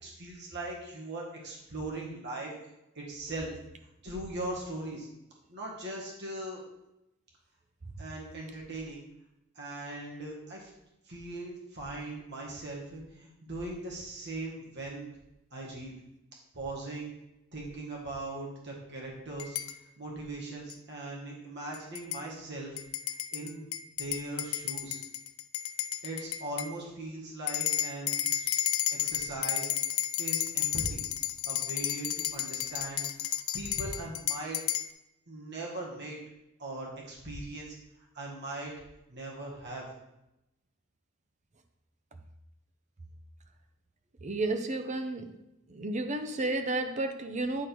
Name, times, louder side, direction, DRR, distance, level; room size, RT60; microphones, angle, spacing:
voice 1, 0.0-2.5 3.0-3.5 4.0-5.1 5.5-6.6 8.0-9.0 9.6-10.7 11.1-15.2 15.5-16.0 16.5-17.1 17.5-19.6 20.0-22.8 23.3-23.7 24.0-25.0 26.0-28.6 28.9-29.7 30.2-31.0 31.5-33.3 33.5-34.6 35.3-36.2 36.6-37.7 38.1-38.7 39.1-39.9, right 2 dB, 55° right, -3 dB, 1.8 m, -39 dB
sound 1, 19.4-19.7 20.7-20.8 21.7-22.2 22.8-26.7 27.5-34.9, left 12 dB, 90° left, 0.5 m, -32 dB
voice 2, 44.2-45.4 45.7-47.7, right 2 dB, 35° right, 7 dB, 0.6 m, -32 dB
9.4 x 3.7 x 4.6 m, 0.89 s
head